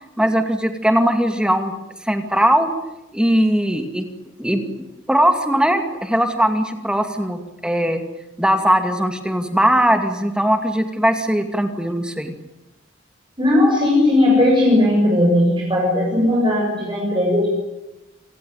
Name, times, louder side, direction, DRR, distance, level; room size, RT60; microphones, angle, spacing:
voice 1, 0.2-1.7 2.0-2.7 3.1-4.0 4.4-4.6 5.1-8.0 8.4-12.3, equal, 5° right, 6 dB, 2.3 m, -19 dB
voice 2, 13.4-17.5, left 1 dB, 25° right, -3 dB, 7.3 m, -17 dB
28.0 x 18.5 x 9.4 m, 0.97 s
head